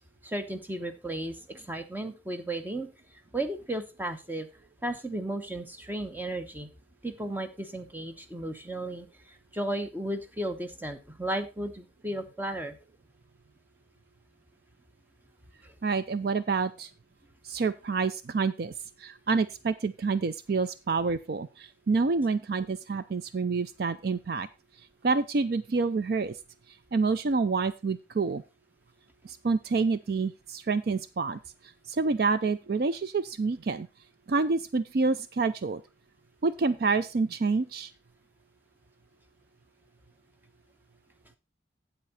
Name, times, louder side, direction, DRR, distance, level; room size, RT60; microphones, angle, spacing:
voice 1, 0.2-2.9 3.3-4.5 4.8-6.7 7.0-12.8 15.6-15.7, right 1 dB, 10° right, 7 dB, 0.9 m, -34 dB
voice 2, 15.8-16.9 17.4-18.7 19.0-24.5 25.0-26.4 26.9-28.4 29.2-31.4 31.9-33.9 34.3-35.8 36.4-37.9, right 4 dB, 55° right, 13 dB, 0.4 m, -28 dB
8.3 x 8.1 x 4.1 m, 0.28 s
head